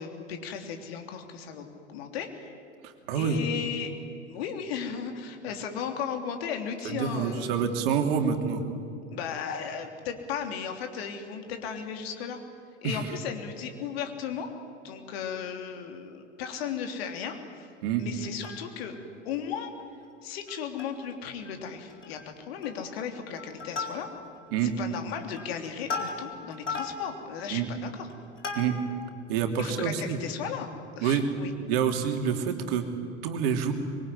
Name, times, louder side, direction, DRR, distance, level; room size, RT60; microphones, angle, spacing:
voice 1, 0.0-2.5 3.1-3.9 4.3-7.7 9.1-12.4 12.8-14.5 14.8-17.7 18.0-19.0 19.2-19.7 20.2-24.1 24.6-28.1 29.6-30.7 31.0-31.5, left 7 dB, 55° left, 5 dB, 3.3 m, -36 dB
voice 2, 2.8-3.4 6.9-8.6 12.8-13.0 17.8-18.1 24.5-24.7 27.5-27.7 28.5-28.8 29.3-30.2 31.0-31.2 31.7-32.8 33.2-33.7, right 8 dB, 55° right, 5 dB, 3.1 m, -27 dB
Plucked string instrument, 18.2-19.0 19.5-19.6 19.8-20.0 20.5-21.1 21.4-21.6 21.9-22.3 22.6-23.0 23.4-24.4 24.9-29.1 29.6-29.7, left 4 dB, 80° left, 4.0 m, -37 dB
25.5 x 22.5 x 9.9 m, 2.5 s
figure-of-eight pair, 85°, 36 cm